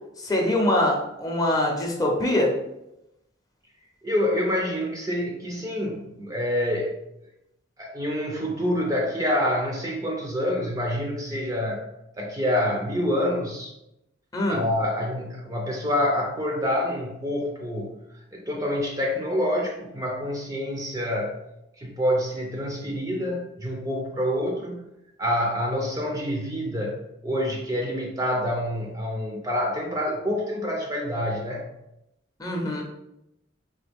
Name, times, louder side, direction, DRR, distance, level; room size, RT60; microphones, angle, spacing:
voice 1, 0.2-2.5 14.3-14.6 32.4-32.8, left 1 dB, 20° left, 0 dB, 0.7 m, -23 dB
voice 2, 4.0-6.9 7.8-11.8 12.2-13.7 14.5-18.0 18.3-21.4 21.8-24.8 25.2-31.7, left 1 dB, 15° right, 0 dB, 0.5 m, -27 dB
4.0 x 3.2 x 3.5 m, 0.85 s
head